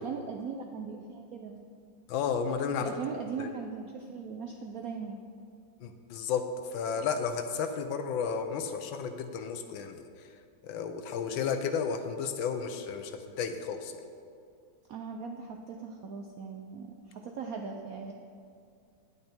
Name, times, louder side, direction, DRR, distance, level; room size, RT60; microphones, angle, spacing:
voice 1, 0.0-1.6 2.8-5.2 14.9-18.1, right 5 dB, 75° right, 3 dB, 0.8 m, -39 dB
voice 2, 2.1-2.9 3.4-3.5 5.8-6.4 6.7-10.0 10.6-13.1 13.4-13.9, left 6 dB, 80° left, 7 dB, 1.5 m, -32 dB
9.4 x 9.0 x 4.4 m, 2.4 s
omnidirectional pair, 2.1 m